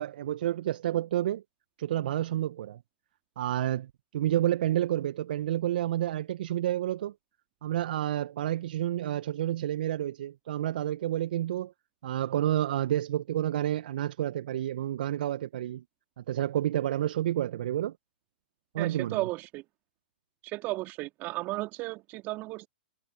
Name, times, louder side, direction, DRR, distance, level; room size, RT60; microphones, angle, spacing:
voice 1, 0.0-1.4 1.8-2.8 3.4-7.1 7.6-11.7 12.0-15.8 16.2-18.0 18.7-19.3, right 12 dB, 60° right, 1.5 m, -29 dB
voice 2, 18.8-19.6 20.4-22.7, right 20 dB, 35° right, 3.2 m, -34 dB
figure-of-eight pair, 115°, 6 cm